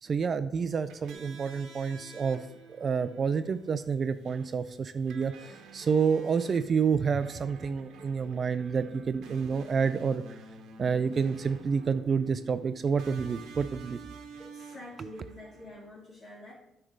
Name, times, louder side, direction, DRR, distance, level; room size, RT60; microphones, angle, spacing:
voice 1, 0.0-10.2 10.8-14.0, right 6 dB, 40° right, 12 dB, 0.3 m, -29 dB
sound 1, 0.7-15.9, right 4 dB, 80° right, 0.9 m, -50 dB
voice 2, 14.4-16.5, left 1 dB, 45° left, -6 dB, 2.0 m, -47 dB
8.7 x 3.3 x 6.3 m, 0.83 s
cardioid pair, 115°, 0 cm